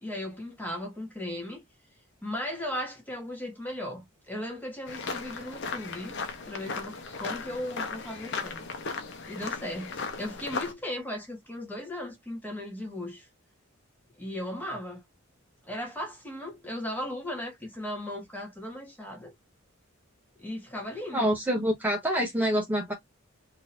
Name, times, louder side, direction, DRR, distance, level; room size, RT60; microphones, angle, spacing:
voice 1, 0.0-1.6 2.2-6.2 6.5-8.6 9.3-9.9 10.2-13.3 14.2-15.0 15.6-19.3 20.4-21.3, left 1 dB, 10° left, 1.1 m, -36 dB
sound 1, 4.9-10.7, left 4 dB, 60° left, 0.9 m, -36 dB
voice 2, 21.1-22.9, equal, 10° right, 0.9 m, -26 dB
3.7 x 2.8 x 2.5 m
head